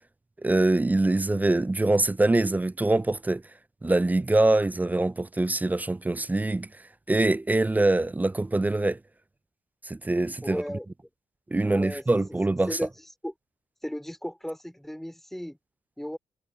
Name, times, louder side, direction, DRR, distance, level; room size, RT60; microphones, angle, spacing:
voice 1, 0.4-3.4 3.8-6.7 7.1-9.0 9.8-10.6 11.5-12.8, right 2 dB, 15° right, 0.4 m, -24 dB
voice 2, 10.4-10.9 11.6-12.2 12.7-12.9 13.2-13.3 13.8-15.6 16.0-16.2, equal, ahead, 2.9 m, -35 dB
cardioid pair, 70°, 12 cm